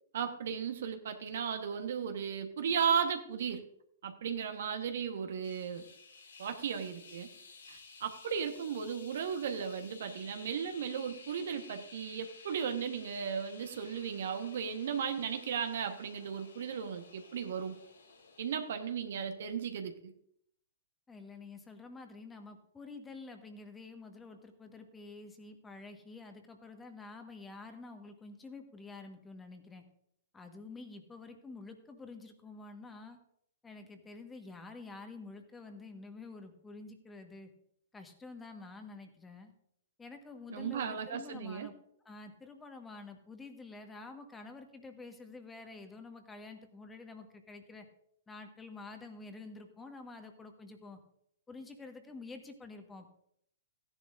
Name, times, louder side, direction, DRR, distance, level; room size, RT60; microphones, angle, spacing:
voice 1, 0.1-3.6 4.0-5.9 6.4-7.3 7.7-17.8 18.4-20.1 40.5-41.7, right 7 dB, 60° right, 7 dB, 1.2 m, -35 dB
sound 1, 5.4-18.8, left 4 dB, 75° left, 3.2 m, -55 dB
voice 2, 21.1-29.8 30.3-33.2 33.6-37.5 37.9-39.5 40.0-41.7 42.0-47.9 48.3-51.0 51.5-53.1, left 3 dB, 10° left, 6 dB, 1.4 m, -49 dB
16.0 x 10.5 x 2.6 m, 0.71 s
figure-of-eight pair, 115°, 0 cm